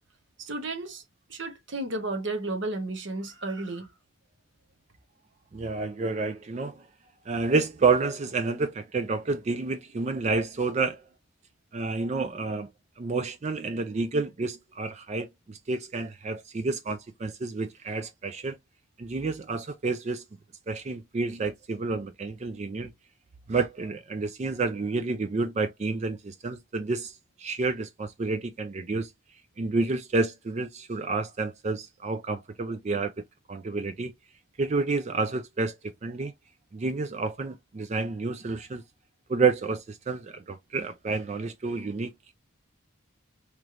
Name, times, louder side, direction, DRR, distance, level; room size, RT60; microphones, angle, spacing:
voice 1, 0.4-1.0 1.3-3.9, right 2 dB, 55° right, 0.9 m, -33 dB
voice 2, 5.5-6.8 7.3-11.0 11.7-12.7 13.0-18.6 19.0-20.2 20.7-22.9 23.5-29.1 29.6-33.1 33.5-34.1 34.6-36.3 36.7-38.8 39.3-42.3, right 3 dB, 30° right, 0.3 m, -29 dB
3.2 x 3.0 x 2.4 m
head